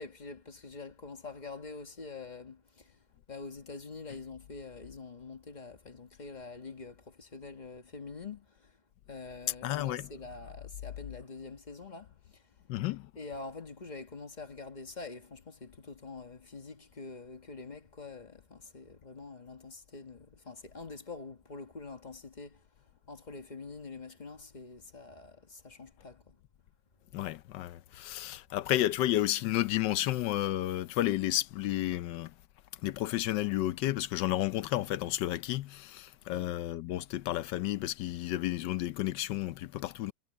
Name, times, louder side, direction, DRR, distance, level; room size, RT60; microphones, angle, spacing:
voice 1, 0.0-3.0 3.3-8.7 9.1-12.4 13.1-22.6 23.1-26.4 36.3-36.6, left 4 dB, 25° left, 1.3 m, -45 dB
voice 2, 9.6-10.1 12.7-13.1 27.1-32.3 32.8-40.1, left 14 dB, 85° left, 1.3 m, -31 dB
omnidirectional pair, 1.9 m